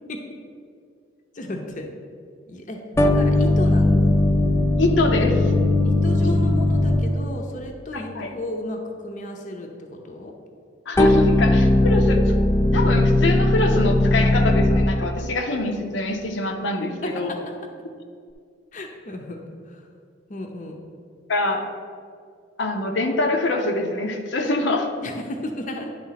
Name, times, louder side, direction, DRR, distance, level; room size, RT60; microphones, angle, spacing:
voice 1, 1.3-1.9 2.5-4.1 5.8-9.7 10.0-10.3 16.8-17.4 18.7-19.4 19.7-19.8 20.3-20.8 25.0-25.9, left 1 dB, 45° left, 2 dB, 0.7 m, -33 dB
sound 1, 3.0-7.4 11.0-15.1, left 1 dB, 15° left, 0.3 m, -18 dB
voice 2, 4.8-5.5 6.2-6.3 7.9-8.3 10.9-12.3 12.7-17.3 21.3-21.7 22.6-24.9, left 2 dB, 85° left, 3 dB, 0.7 m, -24 dB
9.6 x 3.2 x 5.7 m, 2.2 s
head